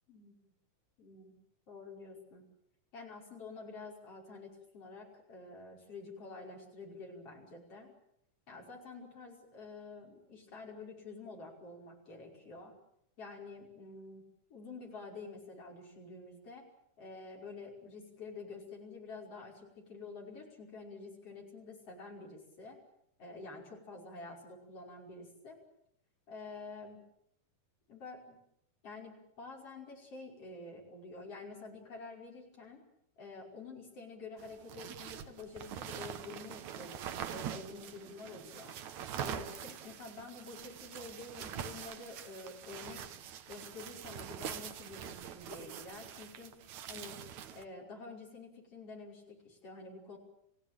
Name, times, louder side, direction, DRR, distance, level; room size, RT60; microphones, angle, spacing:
voice 1, 1.0-1.3 1.7-2.4 2.9-7.9 8.5-12.7 13.2-14.2 14.5-16.7 17.0-22.8 23.2-25.6 26.3-27.0 27.9-28.4 28.8-32.8 33.2-37.0 37.3-38.7 39.2-43.0 43.5-46.6 46.9-47.2 47.5-50.2, left 3 dB, 45° left, 0 dB, 6.5 m, -48 dB
sound 1, 34.4-47.6, right 9 dB, 65° right, 2.5 m, -44 dB
29.5 x 16.5 x 9.0 m, 0.77 s
omnidirectional pair, 3.6 m